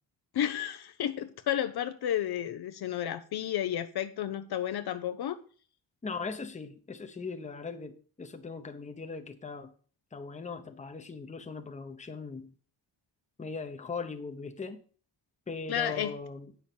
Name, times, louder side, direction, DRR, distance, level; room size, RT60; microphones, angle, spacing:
voice 1, 0.3-5.4 15.7-16.1, left 10 dB, 60° left, 0.8 m, -32 dB
voice 2, 6.0-9.7 10.1-12.5 13.4-14.8 15.5-16.5, left 4 dB, 15° left, 0.9 m, -39 dB
8.8 x 6.1 x 7.0 m
cardioid pair, 155°, 44 cm